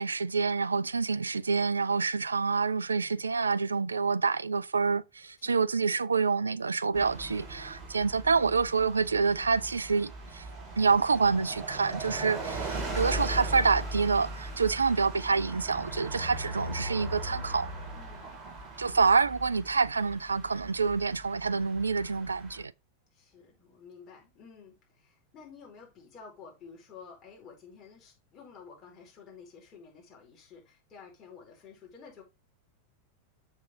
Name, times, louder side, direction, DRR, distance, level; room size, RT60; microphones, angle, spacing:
voice 1, 0.0-10.5 10.8-17.7 18.8-22.7, right 4 dB, 75° right, 0.3 m, -27 dB
voice 2, 5.4-5.7 15.9-16.3 17.9-18.3 18.8-19.2 23.1-32.2, left 6 dB, 30° left, 4.7 m, -51 dB
sound 1, 6.9-22.6, right 1 dB, 25° right, 4.7 m, -39 dB
7.3 x 6.5 x 3.7 m
figure-of-eight pair, 90°, 0 cm